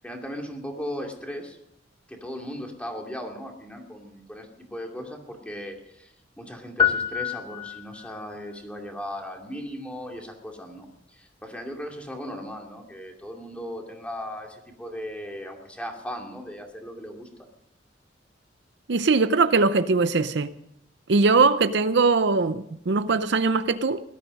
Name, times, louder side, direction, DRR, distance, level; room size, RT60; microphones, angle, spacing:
voice 1, 0.0-1.6 2.1-10.9 11.1-17.3, equal, 5° left, 2.5 m, -37 dB
sound 1, 6.8-8.3, left 8 dB, 25° left, 0.9 m, -26 dB
voice 2, 18.9-20.5 21.1-24.0, right 4 dB, 65° right, 0.6 m, -21 dB
18.0 x 12.5 x 5.3 m
head